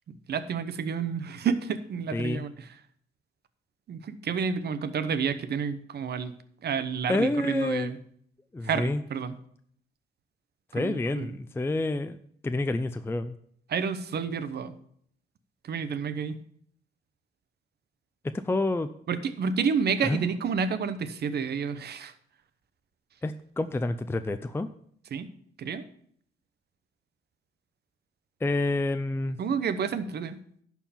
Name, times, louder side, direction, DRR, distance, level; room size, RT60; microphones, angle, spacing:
voice 1, 0.3-2.7 3.9-6.3 6.6-8.0 8.6-9.4 10.7-11.4 13.7-14.7 15.6-16.4 19.1-22.1 25.1-25.3 25.6-25.8 29.4-30.4, right 6 dB, 55° right, 13 dB, 1.0 m, -30 dB
voice 2, 2.1-2.4 7.1-7.9 8.5-9.0 10.7-12.2 12.4-13.4 18.4-18.9 20.0-20.2 23.2-24.7 28.4-29.4, left 2 dB, 10° left, 9 dB, 0.4 m, -28 dB
11.5 x 4.6 x 7.0 m, 0.64 s
cardioid pair, 90°, 20 cm